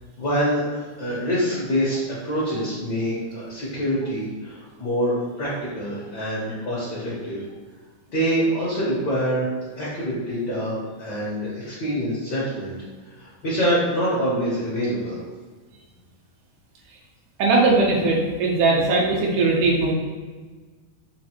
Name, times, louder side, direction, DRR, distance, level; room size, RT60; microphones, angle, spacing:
voice 1, 0.2-7.4 8.1-9.5 9.8-12.7 13.0-15.2, equal, 60° left, -8 dB, 1.2 m, -25 dB
voice 2, 17.4-19.9, right 3 dB, 80° right, -2 dB, 2.1 m, -19 dB
6.5 x 2.5 x 2.9 m, 1.4 s
omnidirectional pair, 3.4 m